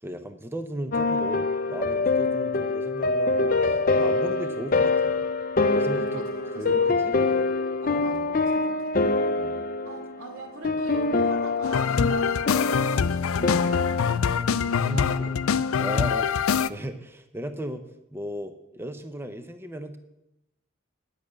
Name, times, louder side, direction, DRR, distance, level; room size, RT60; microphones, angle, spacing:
voice 1, 0.0-5.2 5.7-6.2 6.6-7.2 8.1-8.3 9.3-9.6 14.8-17.9 18.1-20.0, right 1 dB, 10° right, 8 dB, 0.6 m, -36 dB
sound 1, 0.9-14.2, left 3 dB, 40° left, 0.6 m, -25 dB
voice 2, 5.9-7.4 7.8-8.9 9.8-14.5 14.8-15.3, right 2 dB, 85° right, 1 dB, 2.6 m, -42 dB
sound 2, 11.6-16.7, left 6 dB, 85° left, 0.4 m, -24 dB
10.5 x 6.5 x 8.4 m, 0.92 s
head